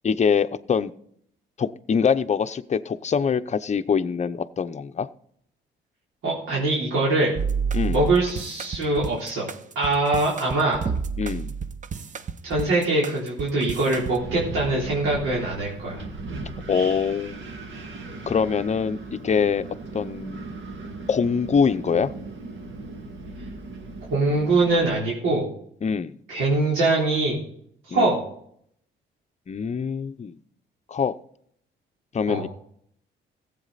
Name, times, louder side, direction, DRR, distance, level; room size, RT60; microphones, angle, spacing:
voice 1, 0.0-0.9 1.6-5.1 7.7-8.1 11.2-11.5 16.7-17.3 18.3-19.6 19.9-20.5 21.1-22.1 25.8-26.1 27.9-28.2 29.5-30.4 30.9-31.2 32.1-32.5, left 6 dB, 35° left, 11 dB, 0.7 m, -24 dB
voice 2, 6.2-7.3 7.9-9.5 9.8-10.8 12.4-16.0 24.1-25.4 26.3-27.4 27.9-28.2 32.3-32.4, right 2 dB, 90° right, -5 dB, 3.7 m, -23 dB
sound 1, 7.4-14.2, right 6 dB, 40° right, 0.9 m, -30 dB
Wind, 13.9-24.9, right 3 dB, 65° right, 2.0 m, -37 dB
15.0 x 8.4 x 4.1 m, 0.67 s
cardioid pair, 90°, 20 cm